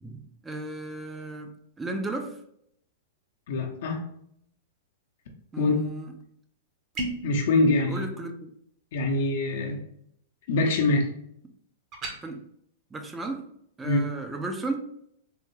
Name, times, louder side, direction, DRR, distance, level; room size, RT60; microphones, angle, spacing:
voice 1, 0.0-1.5 1.8-2.4 5.5-6.1 7.9-8.5 12.2-12.4 12.9-13.5 13.8-14.8, right 2 dB, 15° right, 5 dB, 0.4 m, -34 dB
voice 2, 3.5-4.0 5.6-5.8 7.2-8.1 8.9-9.8 10.5-11.1 13.8-14.0, left 2 dB, 65° left, 0 dB, 0.6 m, -24 dB
sound 1, 6.9-7.3 11.9-12.2, right 2 dB, 35° right, 0.8 m, -32 dB
3.4 x 2.1 x 3.1 m, 0.71 s
hypercardioid pair, 125°, 0 cm